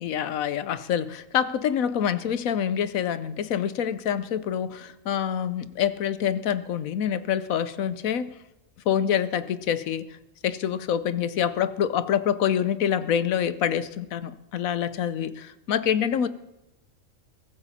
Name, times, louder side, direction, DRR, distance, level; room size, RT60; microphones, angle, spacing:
voice 1, 0.0-8.3 8.9-10.1 10.4-16.3, left 9 dB, 80° left, 13 dB, 1.2 m, -26 dB
22.5 x 14.0 x 4.2 m, 0.93 s
omnidirectional pair, 1.4 m